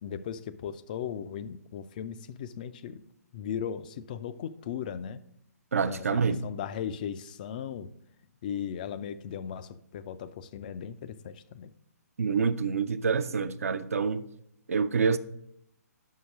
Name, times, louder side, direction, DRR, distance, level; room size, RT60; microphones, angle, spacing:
voice 1, 0.0-3.1 3.3-5.2 5.9-7.9 8.4-11.7, left 8 dB, 30° left, 0.3 m, -37 dB
voice 2, 5.7-6.4 12.2-14.2 14.7-15.2, right 5 dB, 60° right, 0.5 m, -27 dB
5.7 x 5.6 x 6.0 m
figure-of-eight pair, 130°, 9 cm